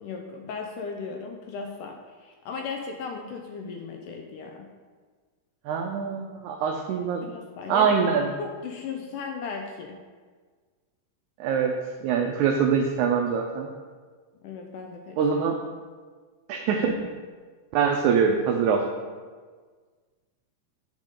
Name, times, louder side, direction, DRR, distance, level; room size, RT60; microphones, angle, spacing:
voice 1, 0.0-4.7 7.2-10.0 14.4-15.2, left 5 dB, 80° left, 3 dB, 1.9 m, -37 dB
voice 2, 5.6-7.3 7.7-8.3 11.4-11.7 12.0-13.7 15.2-15.5 16.5-17.1 17.7-18.8, right 6 dB, 90° right, 2 dB, 1.7 m, -24 dB
9.0 x 5.1 x 3.7 m, 1.5 s
omnidirectional pair, 4.0 m